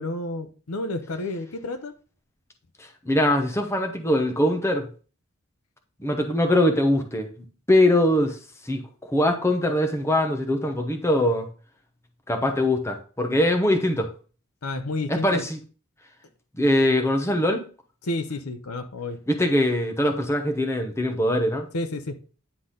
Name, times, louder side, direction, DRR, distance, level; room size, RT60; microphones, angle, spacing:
voice 1, 0.0-1.9 14.6-15.4 18.0-19.2 21.7-22.2, left 2 dB, 75° left, 0.8 m, -30 dB
voice 2, 3.1-4.9 6.0-7.3 7.7-8.4 8.7-8.8 9.1-11.5 12.3-14.1 15.1-15.6 16.6-17.6 19.3-21.7, left 1 dB, 10° left, 0.9 m, -22 dB
9.8 x 4.0 x 3.8 m
head